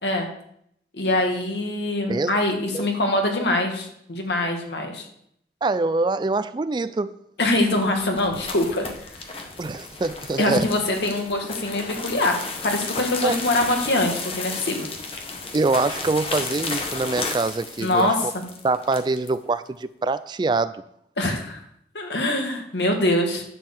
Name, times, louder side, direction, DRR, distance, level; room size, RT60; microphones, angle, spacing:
voice 1, 0.9-5.0 7.4-8.9 10.4-12.3 12.6-14.9 17.8-18.1 21.2-21.6 21.9-23.4, left 1 dB, 80° left, 2 dB, 1.9 m, -23 dB
voice 2, 5.6-7.1 9.6-10.7 13.2-13.4 15.5-18.3 18.6-20.8, right 3 dB, 25° right, 14 dB, 0.3 m, -24 dB
sound 1, 7.6-19.3, left 3 dB, 30° left, 1.2 m, -33 dB
10.5 x 4.7 x 7.2 m, 0.72 s
head